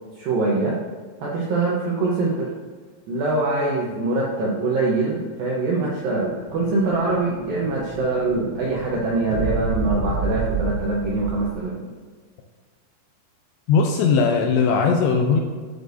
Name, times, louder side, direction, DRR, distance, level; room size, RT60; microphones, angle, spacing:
voice 1, 0.2-0.8 1.2-2.5 3.1-11.8, right 3 dB, 75° right, -4 dB, 2.1 m, -23 dB
Explosion, 5.9-11.7, right 3 dB, 40° right, 2.5 m, -30 dB
voice 2, 13.7-15.4, left 5 dB, 85° left, 3 dB, 2.6 m, -19 dB
11.5 x 6.5 x 2.6 m, 1.5 s
omnidirectional pair, 5.4 m